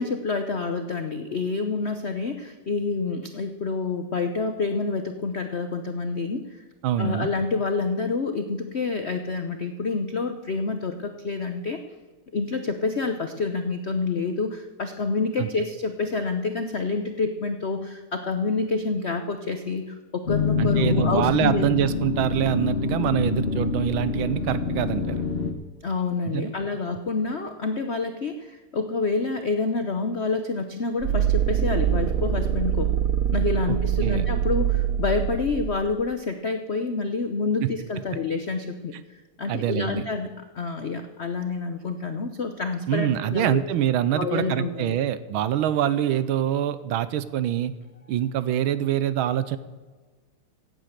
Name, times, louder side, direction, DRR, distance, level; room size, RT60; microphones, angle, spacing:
voice 1, 0.0-6.6 7.0-11.8 12.3-21.6 25.8-32.9 33.3-43.6 44.1-45.0, left 4 dB, 75° left, 7 dB, 0.6 m, -28 dB
voice 2, 6.8-7.3 15.4-15.5 20.6-25.2 26.2-26.5 33.7-34.2 37.6-37.7 39.5-40.1 42.9-47.7 48.1-49.6, right 11 dB, 75° right, 14 dB, 1.5 m, -25 dB
sound 1, 20.2-25.5, left 5 dB, 35° left, 1.1 m, -26 dB
sound 2, 31.0-35.9, right 9 dB, 55° right, 1.1 m, -24 dB
16.0 x 9.1 x 6.6 m, 1.3 s
omnidirectional pair, 2.4 m